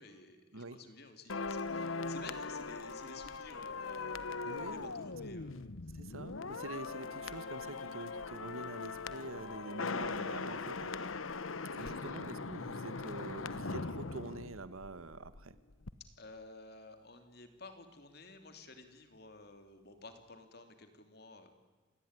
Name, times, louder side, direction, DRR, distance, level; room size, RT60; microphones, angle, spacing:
voice 1, 0.0-5.7 11.8-12.2 16.2-21.5, left 3 dB, 50° left, 7 dB, 3.0 m, -53 dB
voice 2, 0.5-0.8 4.4-4.9 5.9-11.2 11.7-15.6, right 2 dB, 90° right, 14 dB, 1.4 m, -46 dB
sound 1, 1.3-15.4 15.7-15.9, left 4 dB, 80° left, 1.0 m, -40 dB
28.0 x 19.0 x 9.8 m, 1.3 s
head